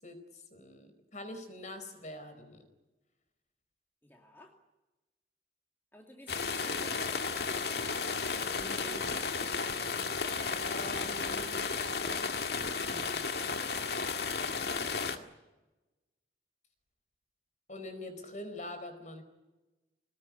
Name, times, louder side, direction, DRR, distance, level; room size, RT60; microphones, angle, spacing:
voice 1, 0.0-2.6 8.5-9.1 10.7-11.6 12.8-13.3 17.7-19.2, left 1 dB, 45° left, 8 dB, 4.4 m, -44 dB
voice 2, 4.0-4.6 5.9-7.9, left 1 dB, 10° left, 1 dB, 2.5 m, -54 dB
sound 1, 6.3-15.2, left 5 dB, 60° left, 2.0 m, -33 dB
23.0 x 19.5 x 9.8 m, 1.1 s
head